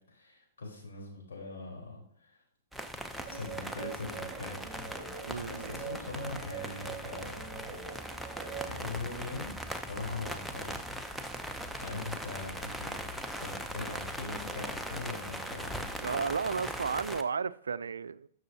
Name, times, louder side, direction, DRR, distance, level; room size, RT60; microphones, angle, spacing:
voice 1, 0.1-2.4 3.3-7.7 8.6-9.5 9.8-10.7 11.8-15.9, left 3 dB, 80° left, 3.8 m, -42 dB
sound 1, 2.7-17.2, equal, ahead, 0.6 m, -40 dB
Guitar, 3.3-8.7, right 7 dB, 25° right, 1.5 m, -44 dB
voice 2, 5.2-5.7 16.0-18.3, right 5 dB, 85° right, 0.3 m, -33 dB
12.5 x 6.2 x 2.7 m
hypercardioid pair, 125°, 0 cm